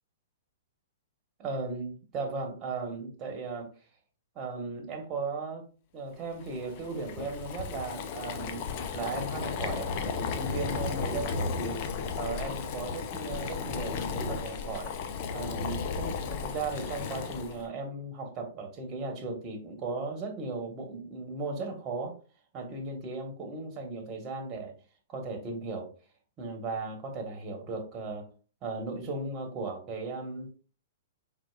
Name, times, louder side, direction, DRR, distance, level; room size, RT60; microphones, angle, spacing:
voice 1, 1.4-3.7 4.3-5.6 5.9-8.6 8.9-11.8 12.2-14.9 15.3-22.2 22.5-24.7 25.1-25.9 26.4-28.3 28.6-30.5, right 3 dB, 30° right, 3 dB, 1.3 m, -36 dB
Boiling, 6.4-17.7, left 5 dB, 45° left, 0.6 m, -34 dB
4.6 x 3.7 x 2.4 m, 0.36 s
hypercardioid pair, 120°, 0 cm